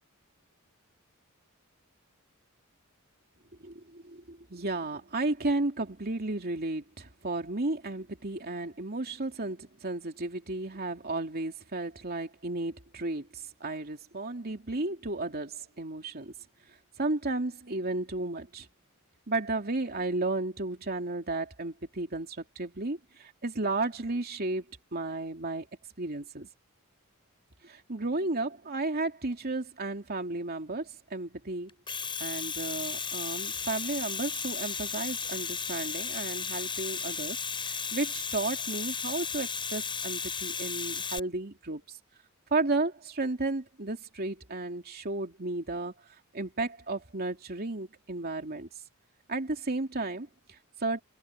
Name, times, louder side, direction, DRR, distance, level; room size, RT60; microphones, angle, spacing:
voice 1, 3.6-16.3 17.0-18.7 19.3-25.7 26.0-26.5 27.6-31.7 32.2-42.0 42.5-45.9 46.3-48.7 49.3-51.0, right 2 dB, 45° right, 2.8 m, -33 dB
Domestic sounds home sounds, 31.7-41.2, left 6 dB, 25° left, 6.8 m, -34 dB
head